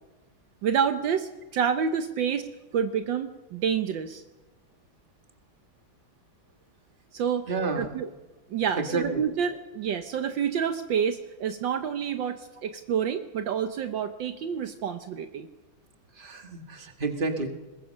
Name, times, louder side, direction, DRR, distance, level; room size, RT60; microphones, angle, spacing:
voice 1, 0.6-2.5 2.7-4.2 7.1-7.5 7.8-8.1 8.5-15.5, right 7 dB, 70° right, 9 dB, 1.5 m, -28 dB
voice 2, 7.5-8.0 8.8-9.3 16.2-17.5, right 3 dB, 25° right, 5 dB, 1.9 m, -30 dB
22.0 x 20.5 x 6.5 m, 1.1 s
omnidirectional pair, 2.2 m